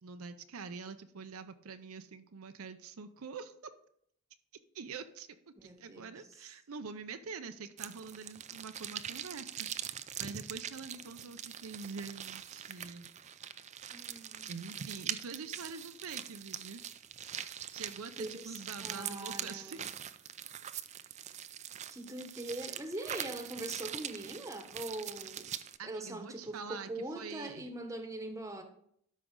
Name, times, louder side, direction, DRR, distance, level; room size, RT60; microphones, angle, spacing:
voice 1, 0.0-3.7 4.7-13.1 14.5-16.8 17.7-19.9 25.8-27.7, right 5 dB, 80° right, 9 dB, 0.6 m, -45 dB
voice 2, 5.6-6.1 13.9-14.5 18.2-19.9 21.9-25.5 25.8-28.6, right 1 dB, 15° right, 6 dB, 1.0 m, -42 dB
sound 1, 7.8-25.8, right 9 dB, 30° right, 0.4 m, -43 dB
12.5 x 5.2 x 3.7 m, 0.67 s
head